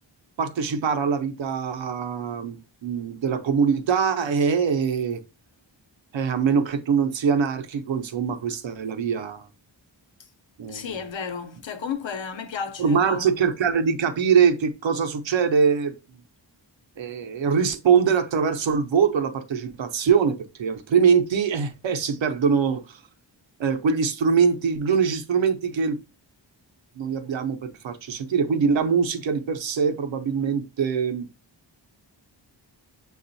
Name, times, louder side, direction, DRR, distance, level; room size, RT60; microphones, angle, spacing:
voice 1, 0.4-5.2 6.1-9.5 10.6-10.9 12.8-15.9 17.0-23.0 23.6-26.0 27.0-31.3, right 6 dB, 85° right, 0.7 m, -23 dB
voice 2, 10.7-13.5, left 6 dB, 85° left, 0.8 m, -33 dB
6.7 x 2.4 x 2.6 m
wide cardioid pair, 130°, 44 cm